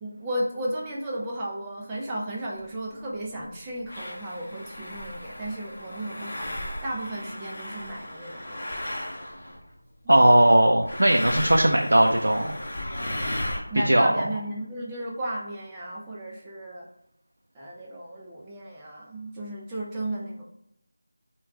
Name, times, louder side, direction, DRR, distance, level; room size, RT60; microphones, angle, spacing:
voice 1, 0.0-8.6 10.0-10.1 13.7-16.9 17.5-20.4, right 1 dB, 10° right, -5 dB, 0.4 m, -34 dB
sound 1, 2.6-2.7 3.4-3.5 3.9-9.7 10.8-13.6, left 1 dB, 35° left, 0.9 m, -35 dB
voice 2, 10.1-12.5 13.7-14.1, right 1 dB, 75° right, 2 dB, 0.4 m, -18 dB
3.3 x 2.3 x 3.5 m, 0.83 s
figure-of-eight pair, 175°, 0 cm